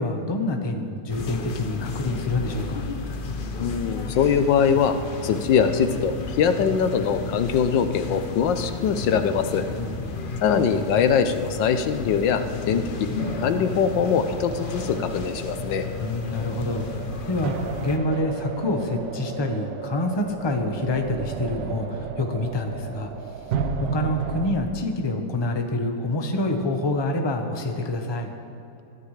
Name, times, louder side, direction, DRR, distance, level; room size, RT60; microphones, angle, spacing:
voice 1, 0.0-2.9 9.7-10.3 16.0-16.9 17.3-17.5 17.8-23.1 23.5-28.3, left 2 dB, 20° left, 3 dB, 0.8 m, -27 dB
sound 1, 1.1-18.0, left 4 dB, 55° left, 0.5 m, -33 dB
voice 2, 3.6-4.9 5.2-9.6 10.4-13.1 13.4-15.9, left 7 dB, 80° left, 9 dB, 1.4 m, -22 dB
sound 2, 13.2-24.5, right 6 dB, 75° right, 1.5 m, -33 dB
21.5 x 14.0 x 3.3 m, 2.9 s
omnidirectional pair, 2.0 m